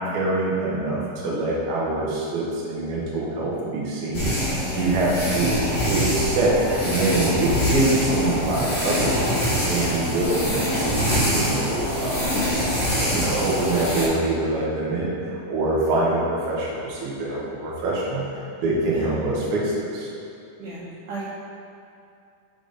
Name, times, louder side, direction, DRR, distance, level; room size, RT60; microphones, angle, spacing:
voice 1, 0.0-5.6 5.9-12.7 13.0-20.1, right 2 dB, 65° right, -5 dB, 1.5 m, -25 dB
sound 1, 4.1-14.1, equal, 65° left, 0.7 m, -24 dB
voice 2, 4.6-4.9 9.7-10.0 18.9-19.0 20.6-21.2, right 1 dB, 80° right, -9 dB, 2.4 m, -34 dB
5.2 x 3.7 x 5.1 m, 2.5 s
omnidirectional pair, 3.7 m